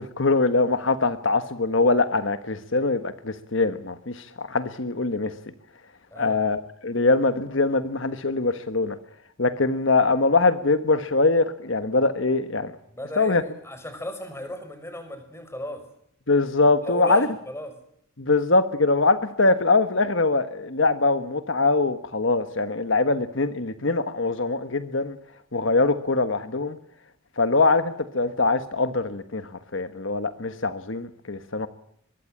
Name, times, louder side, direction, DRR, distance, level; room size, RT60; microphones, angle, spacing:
voice 1, 0.0-5.3 6.2-9.0 9.4-12.7 13.2-13.4 16.3-17.3 18.2-25.2 25.5-26.8 27.4-29.4 29.7-31.7, left 3 dB, 60° left, 11 dB, 1.4 m, -23 dB
voice 2, 12.9-15.8 16.8-17.8, left 1 dB, 10° left, 9 dB, 5.4 m, -35 dB
23.5 x 21.5 x 8.7 m, 0.71 s
head